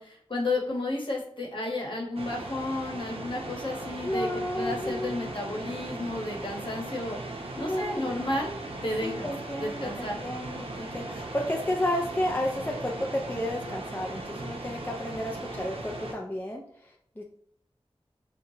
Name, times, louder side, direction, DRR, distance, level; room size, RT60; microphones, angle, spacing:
voice 1, 0.0-7.2 7.6-8.5 8.8-9.3 9.6-10.2, left 2 dB, 55° left, -1 dB, 1.0 m, -32 dB
sound 1, 2.1-16.1, right 2 dB, 70° right, 0.7 m, -38 dB
voice 2, 4.0-5.3 7.6-8.2 9.0-17.2, left 1 dB, 20° left, -1 dB, 0.4 m, -32 dB
5.5 x 2.3 x 2.7 m, 0.67 s
wide cardioid pair, 65°, 10 cm